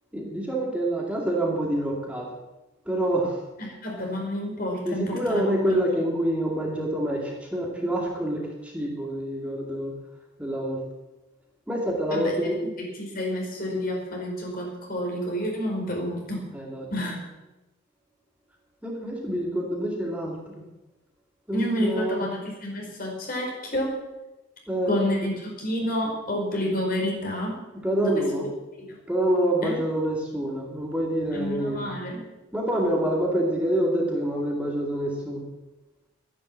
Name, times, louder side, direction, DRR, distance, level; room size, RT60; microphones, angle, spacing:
voice 1, 0.1-2.4 2.9-3.4 4.8-10.0 10.4-10.8 11.7-12.6 16.5-17.1 18.8-20.6 21.5-22.3 24.7-25.0 27.8-28.5 29.1-31.9 32.5-35.5, right 1 dB, 5° right, -1 dB, 2.3 m, -27 dB
voice 2, 3.6-5.7 12.1-12.3 12.8-16.5 16.9-17.2 21.5-24.0 24.9-27.6 28.0-28.3 28.8-28.9 29.6-29.8 31.3-32.2, left 1 dB, 50° left, 0 dB, 4.6 m, -29 dB
12.5 x 11.0 x 8.6 m, 1.0 s
head